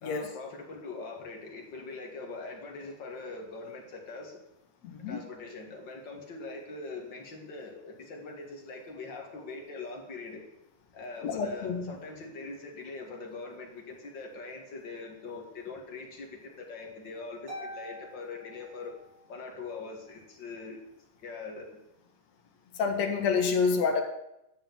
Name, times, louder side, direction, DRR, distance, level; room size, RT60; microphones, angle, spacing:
voice 1, 0.0-4.4 5.1-10.4 10.9-18.9 19.3-20.8 21.2-21.8, left 3 dB, 40° left, 1 dB, 2.2 m, -42 dB
voice 2, 4.8-5.2 11.2-11.9 22.7-24.0, left 5 dB, 60° left, 4 dB, 2.4 m, -28 dB
Harp, 17.5-19.3, equal, 40° right, 3.5 m, -45 dB
11.5 x 6.8 x 7.4 m, 0.85 s
omnidirectional pair, 3.8 m